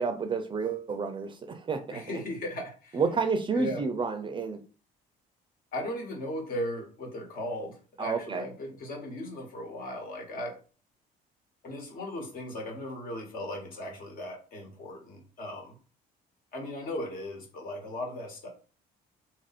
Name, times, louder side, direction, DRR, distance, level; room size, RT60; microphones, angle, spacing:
voice 1, 0.0-2.0 2.9-4.6 8.0-8.4, right 4 dB, 30° right, 7 dB, 0.5 m, -30 dB
voice 2, 1.9-3.0 3.5-3.8 5.7-10.5 11.6-15.8 16.5-18.5, left 1 dB, 60° left, 1 dB, 1.4 m, -37 dB
3.0 x 2.5 x 4.1 m, 0.37 s
cardioid pair, 110°, 17 cm